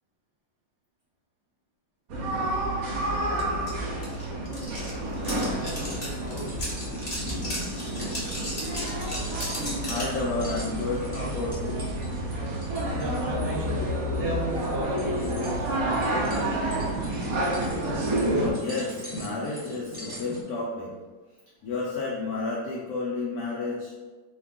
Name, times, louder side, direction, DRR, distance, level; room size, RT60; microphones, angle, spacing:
sound 1, 2.1-18.5, right 1 dB, 90° right, 0.7 m, -30 dB
sound 2, 3.4-3.5 3.7-10.2, left 1 dB, 45° left, 0.6 m, -35 dB
sound 3, 5.4-20.4, right 1 dB, 20° right, 0.8 m, -41 dB
voice 1, 5.6-6.6 12.9-17.0, right 1 dB, 50° right, -5 dB, 0.6 m, -35 dB
voice 2, 9.1-9.5 9.8-11.9 18.2-20.9 21.6-23.9, left 3 dB, 90° left, -4 dB, 0.8 m, -31 dB
3.4 x 2.3 x 3.6 m, 1.3 s
omnidirectional pair, 2.3 m